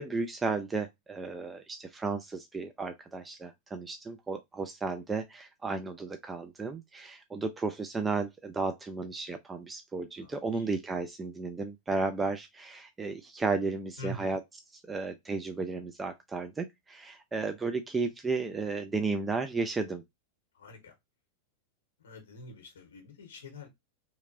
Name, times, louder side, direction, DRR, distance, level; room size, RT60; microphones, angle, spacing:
voice 1, 0.0-14.4 14.9-20.0, right 3 dB, 15° right, 0.3 m, -33 dB
voice 2, 10.2-10.7 14.0-14.3 20.5-20.9 22.0-23.7, left 1 dB, 65° left, 0.8 m, -45 dB
2.9 x 2.5 x 2.4 m
figure-of-eight pair, 90°, 0 cm